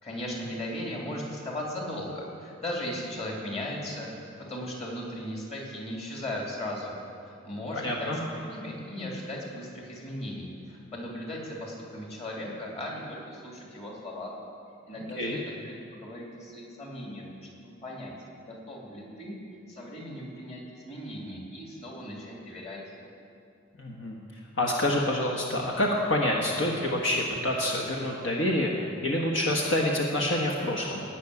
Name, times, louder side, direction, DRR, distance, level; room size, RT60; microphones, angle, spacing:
voice 1, 0.0-4.1 4.5-7.0 7.2-14.3 14.9-17.3 17.6-18.1 18.4-19.4 19.7-22.8, left 1 dB, 30° left, -3 dB, 3.0 m, -37 dB
voice 2, 7.7-8.2 15.2-15.4 23.8-24.1 24.6-31.0, left 1 dB, 65° left, -1 dB, 1.4 m, -27 dB
18.0 x 6.2 x 9.7 m, 2.7 s
head